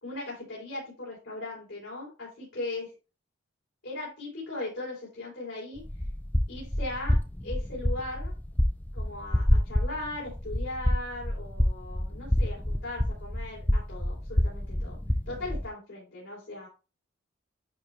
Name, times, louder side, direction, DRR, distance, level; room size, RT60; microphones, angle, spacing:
voice 1, 0.0-2.9 3.8-5.8 6.5-7.2 7.4-8.3 8.9-15.0 15.3-16.7, left 2 dB, 70° left, -5 dB, 3.1 m, -38 dB
sound 1, 5.8-15.7, left 1 dB, 10° left, 0.4 m, -28 dB
9.8 x 4.4 x 2.3 m, 0.33 s
head